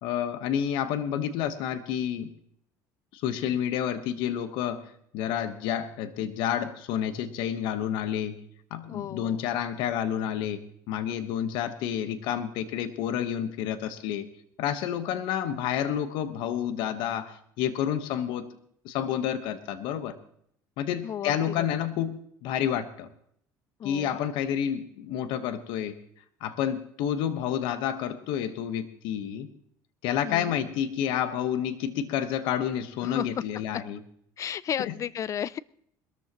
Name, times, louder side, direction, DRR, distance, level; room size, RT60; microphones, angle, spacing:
voice 1, 0.0-2.3 3.1-4.9 5.1-8.4 8.7-10.6 10.9-14.3 14.6-18.5 18.8-20.1 20.8-23.1 23.8-26.0 26.4-29.5 30.0-34.0 34.8-34.9, left 9 dB, 75° left, 11 dB, 1.2 m, -29 dB
voice 2, 8.9-9.4 21.0-21.7 23.8-24.2 30.2-30.5 33.0-33.3 34.4-35.6, left 9 dB, 40° left, 21 dB, 0.4 m, -33 dB
21.5 x 13.5 x 3.0 m, 0.67 s
supercardioid pair, 105°, 8 cm